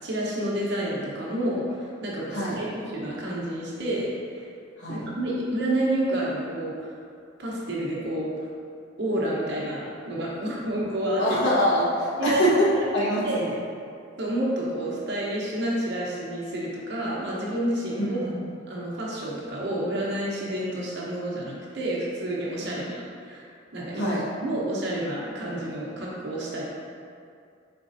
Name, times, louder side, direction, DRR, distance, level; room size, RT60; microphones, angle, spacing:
voice 1, 0.0-4.5 4.9-6.9 7.4-8.5 9.0-11.4 12.2-12.4 13.2-13.6 14.2-18.2 18.7-24.2 24.4-26.6, right 1 dB, 55° right, -5 dB, 0.9 m, -29 dB
voice 2, 11.2-13.5 18.0-18.5 22.7-22.8 23.9-24.2, equal, 65° left, -7 dB, 1.0 m, -24 dB
4.3 x 4.1 x 2.6 m, 2.3 s
head